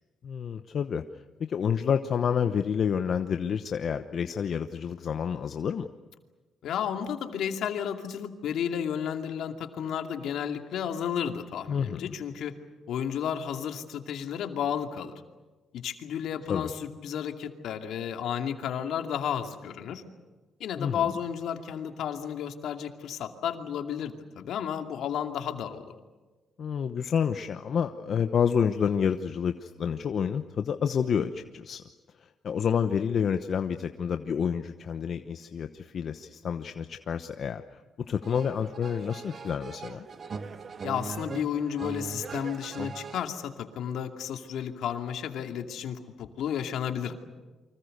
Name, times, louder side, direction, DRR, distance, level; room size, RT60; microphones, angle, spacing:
voice 1, 0.2-1.0 1.4-5.9 11.7-12.1 16.5-16.7 20.8-21.0 26.6-31.8 32.4-37.6 38.0-40.1, left 7 dB, 55° left, 8 dB, 1.0 m, -29 dB
voice 2, 6.6-12.5 12.9-15.1 15.7-20.0 20.6-25.9 40.8-47.1, left 8 dB, 75° left, 5 dB, 2.5 m, -32 dB
sound 1, 38.2-43.3, right 5 dB, 45° right, 1.4 m, -40 dB
29.0 x 25.0 x 6.7 m, 1.3 s
cardioid pair, 90°, 0 cm